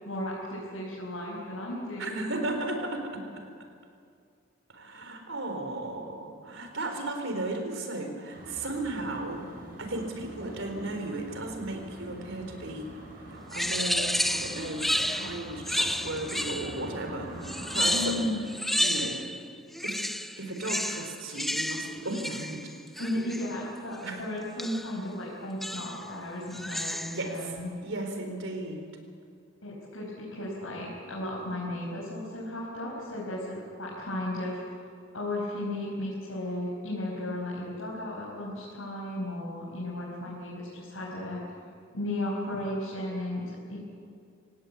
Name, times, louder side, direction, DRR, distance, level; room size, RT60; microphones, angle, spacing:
voice 1, 0.0-2.2 17.8-18.4 23.0-27.7 29.6-34.6 35.1-41.4 41.9-43.8, left 1 dB, 80° left, -5 dB, 5.2 m, -35 dB
voice 2, 2.0-3.2 4.7-9.4 9.8-12.9 13.3-17.3 17.7-18.3 18.8-19.4 19.8-20.0 20.4-22.6 24.0-24.2 27.1-28.9, right 2 dB, 70° right, 5 dB, 4.1 m, -35 dB
sound 1, 8.3-18.1, right 1 dB, 45° right, 5.6 m, -45 dB
sound 2, 13.5-16.9 17.4-19.4 19.7-23.6 24.6-25.0 25.6-26.1 26.5-27.3, equal, ahead, 0.5 m, -31 dB
26.5 x 17.5 x 8.5 m, 2.3 s
head